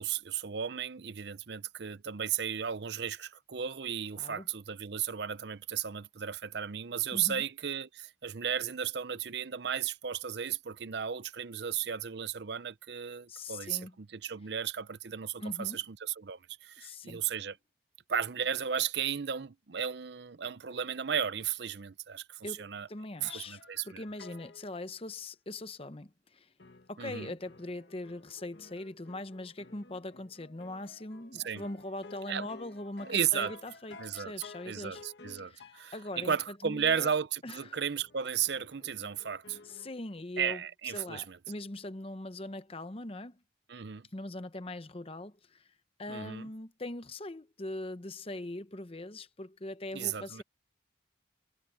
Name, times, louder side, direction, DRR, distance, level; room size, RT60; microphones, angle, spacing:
voice 1, 0.0-17.6 18.1-22.9 23.2-24.0 27.0-27.3 31.4-31.6 32.3-32.5 33.1-33.6 34.0-34.3 34.6-39.6 40.4-41.4 43.7-44.1 46.1-46.5 49.9-50.4, right 8 dB, 60° right, 0.6 m, -34 dB
voice 2, 7.1-7.4 13.3-13.9 15.4-15.8 16.8-17.2 22.4-26.5 26.9-35.0 35.4-37.1 37.4-37.8 39.6-40.6 40.9-43.4 44.1-45.7 46.0-50.4, left 2 dB, 30° left, 0.8 m, -41 dB
sound 1, 23.2-24.7 26.6-36.3 38.0-39.9, left 3 dB, 60° left, 1.3 m, -54 dB
head